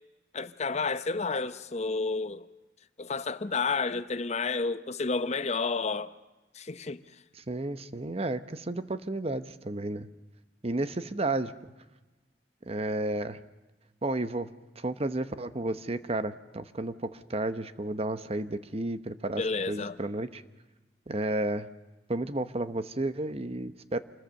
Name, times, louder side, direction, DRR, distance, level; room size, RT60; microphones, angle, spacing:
voice 1, 0.3-2.5 3.0-6.1 6.5-7.0 19.4-20.0, left 4 dB, 40° left, 0.8 m, -30 dB
voice 2, 7.5-10.1 10.6-11.5 12.6-13.4 14.0-14.5 14.8-19.4 19.7-20.4 21.1-21.7 22.1-24.0, right 2 dB, 35° right, 0.9 m, -32 dB
27.5 x 21.0 x 6.6 m
head